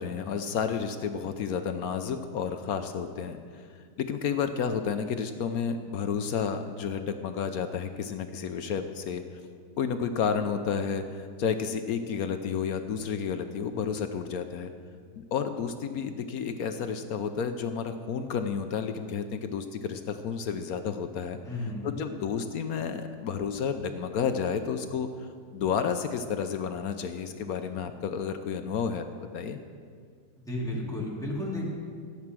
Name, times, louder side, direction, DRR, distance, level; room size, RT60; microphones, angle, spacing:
voice 1, 0.0-3.6 4.0-9.2 9.8-11.0 11.4-14.7 15.2-21.4 21.8-29.1 29.3-29.6, left 6 dB, 65° left, 8 dB, 1.0 m, -31 dB
voice 2, 21.5-22.0 30.5-31.6, left 1 dB, ahead, -4 dB, 2.4 m, -33 dB
14.5 x 8.7 x 6.1 m, 2.1 s
omnidirectional pair, 1.9 m